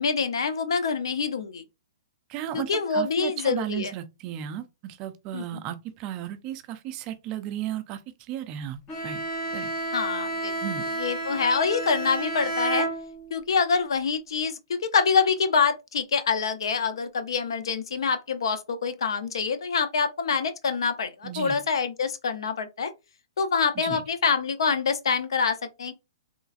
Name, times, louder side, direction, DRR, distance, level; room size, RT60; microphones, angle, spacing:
voice 1, 0.0-1.6 2.5-3.9 5.3-5.6 9.9-10.6 11.0-12.9 13.3-22.9 23.4-25.9, left 5 dB, 75° left, 0.5 m, -26 dB
voice 2, 2.3-8.0 8.3-9.2 9.5-9.7 10.6-10.9 21.2-21.6 23.8-24.0, right 11 dB, 30° right, 0.3 m, -34 dB
Bowed string instrument, 8.9-13.5, right 2 dB, 20° left, 0.9 m, -31 dB
3.1 x 2.4 x 2.4 m
hypercardioid pair, 150°, 3 cm